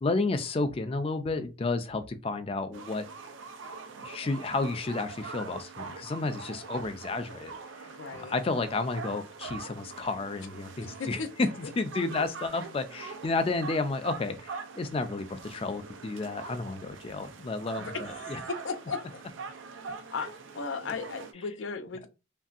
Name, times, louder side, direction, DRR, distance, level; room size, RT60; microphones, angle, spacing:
voice 1, 0.0-3.1 4.0-7.5 8.1-18.4, left 3 dB, 30° left, 0.3 m, -31 dB
sound 1, 2.7-21.3, right 4 dB, 85° right, 0.4 m, -43 dB
voice 2, 8.0-8.3 11.0-11.3 17.8-17.9 18.2-18.4 18.6-19.2 20.1-22.1, left 5 dB, 85° left, 0.5 m, -36 dB
3.0 x 2.6 x 2.4 m
head